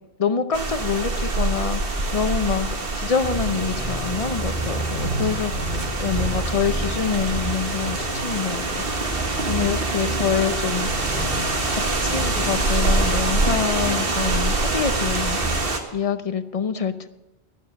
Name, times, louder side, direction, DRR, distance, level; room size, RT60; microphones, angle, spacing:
voice 1, 0.2-1.8 2.1-2.7 3.0-5.7 6.0-9.1 9.5-11.2 11.7-15.5 15.9-17.1, left 6 dB, 40° left, 10 dB, 0.7 m, -26 dB
sound 1, 0.5-15.8, right 3 dB, 60° right, 1.7 m, -25 dB
sound 2, 3.2-15.6, right 1 dB, 35° right, 4.2 m, -30 dB
12.5 x 11.0 x 5.3 m, 1.0 s
omnidirectional pair, 1.1 m